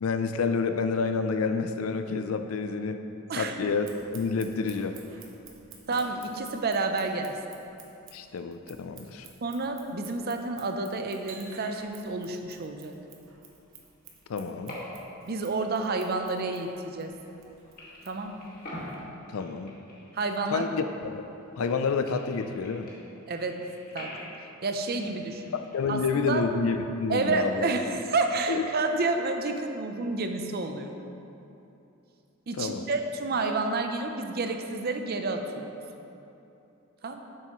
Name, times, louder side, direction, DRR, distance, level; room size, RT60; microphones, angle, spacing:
voice 1, 0.0-3.0 3.3-5.0 8.1-9.3 14.3-14.8 19.3-19.7 20.5-21.3 21.6-22.9 25.5-27.7 28.5-28.6 32.6-32.9, left 5 dB, 75° left, 8 dB, 0.4 m, -29 dB
Scissors, 3.7-19.0, right 5 dB, 60° right, 1.0 m, -53 dB
voice 2, 5.9-7.4 9.4-12.9 15.3-17.1 18.0-18.5 20.1-20.6 23.3-23.7 23.9-24.1 24.6-25.4 25.9-26.4 27.1-30.9 32.5-35.7 37.0-37.2, right 3 dB, 45° right, 5 dB, 0.6 m, -30 dB
sound 1, 14.4-15.2 15.5-17.5 17.8-21.3 21.6-25.9, left 1 dB, 40° left, 1.9 m, -46 dB
10.0 x 7.7 x 3.0 m, 2.8 s
head